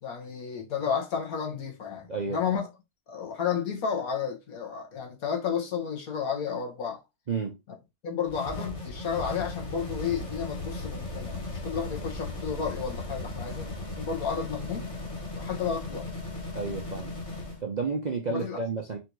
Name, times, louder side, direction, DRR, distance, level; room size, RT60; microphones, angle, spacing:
voice 1, 0.0-2.7 3.1-7.0 8.0-13.7 14.0-14.9 15.4-16.1 18.3-18.6, left 7 dB, 70° left, 1.6 m, -32 dB
voice 2, 2.1-2.6 7.3-7.6 16.5-17.1 17.6-19.0, right 4 dB, 45° right, 0.6 m, -31 dB
sound 1, 8.3-17.6, left 2 dB, 25° left, 1.0 m, -37 dB
4.2 x 2.7 x 4.5 m
omnidirectional pair, 1.6 m